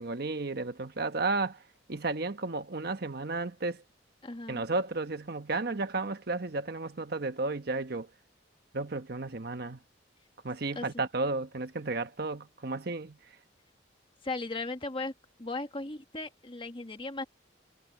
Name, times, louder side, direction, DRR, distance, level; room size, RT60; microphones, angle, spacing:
voice 1, 0.0-1.6 1.9-3.8 4.5-8.1 8.7-9.8 10.4-13.2, right 3 dB, 55° right, 1.2 m, -33 dB
voice 2, 4.2-4.6 10.7-10.9 14.2-15.1 15.4-17.2, left 2 dB, 30° left, 1.6 m, -36 dB
head